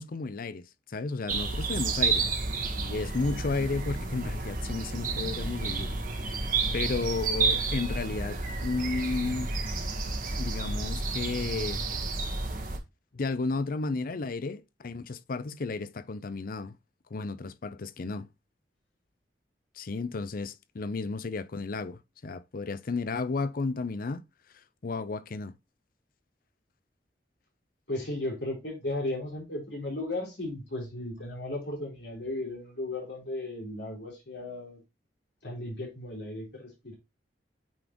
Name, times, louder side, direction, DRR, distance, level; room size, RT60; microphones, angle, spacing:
voice 1, 0.0-2.3 2.8-9.5 10.4-11.8 13.1-16.7 17.1-18.3 19.8-24.2 24.8-25.5, left 3 dB, 55° left, 0.5 m, -33 dB
sound 1, 1.3-12.8, right 3 dB, 50° right, 1.4 m, -31 dB
voice 2, 27.9-34.8 35.4-36.9, left 2 dB, 70° left, 3.9 m, -35 dB
8.6 x 4.0 x 3.0 m
head